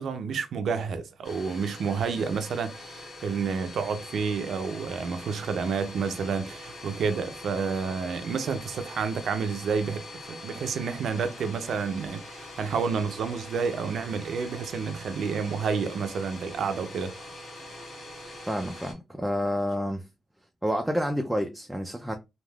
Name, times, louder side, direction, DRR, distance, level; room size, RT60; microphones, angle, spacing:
voice 1, 0.0-17.1, right 5 dB, 75° right, 0.5 m, -30 dB
Domestic sounds home sounds, 1.2-18.9, left 1 dB, 55° left, 1.4 m, -43 dB
voice 2, 18.5-20.1 20.6-22.1, equal, 5° right, 0.4 m, -29 dB
3.3 x 2.3 x 2.3 m
cardioid pair, 105°, 0 cm